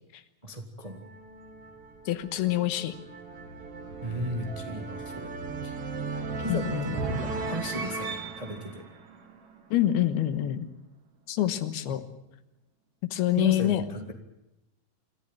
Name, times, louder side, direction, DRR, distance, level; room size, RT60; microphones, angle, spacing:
voice 1, 0.4-1.0 4.0-5.3 5.6-5.7 6.4-8.8 13.4-14.1, equal, 20° right, 4 dB, 1.0 m, -35 dB
sound 1, 0.8-9.9, right 4 dB, 45° right, 2.2 m, -36 dB
voice 2, 2.1-2.9 6.5-7.0 9.7-10.7 11.3-12.0 13.1-13.8, left 13 dB, 90° left, 11 dB, 3.2 m, -26 dB
26.5 x 14.5 x 9.2 m, 0.93 s
omnidirectional pair, 4.4 m